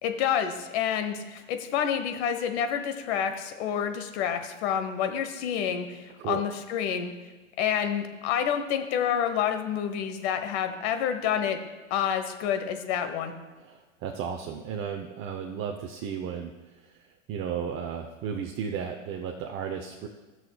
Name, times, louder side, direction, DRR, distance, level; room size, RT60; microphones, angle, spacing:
voice 1, 0.0-7.1 7.6-11.6 11.9-13.3, left 8 dB, 55° left, 8 dB, 1.2 m, -28 dB
voice 2, 13.6-17.0 17.3-20.1, right 7 dB, 30° right, 3 dB, 0.7 m, -34 dB
18.5 x 6.3 x 2.3 m, 1.3 s
hypercardioid pair, 105°, 39 cm